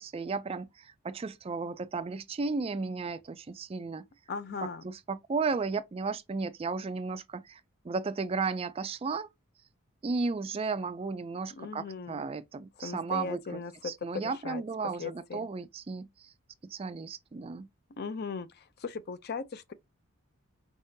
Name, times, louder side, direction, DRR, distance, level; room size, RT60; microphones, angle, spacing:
voice 1, 0.0-4.1 4.8-9.3 10.0-16.3 16.6-17.7, right 4 dB, 25° right, 0.3 m, -34 dB
voice 2, 4.3-4.8 11.5-12.2 12.8-14.6 15.0-15.5 18.0-19.7, left 4 dB, 50° left, 0.5 m, -38 dB
4.6 x 3.5 x 2.7 m
head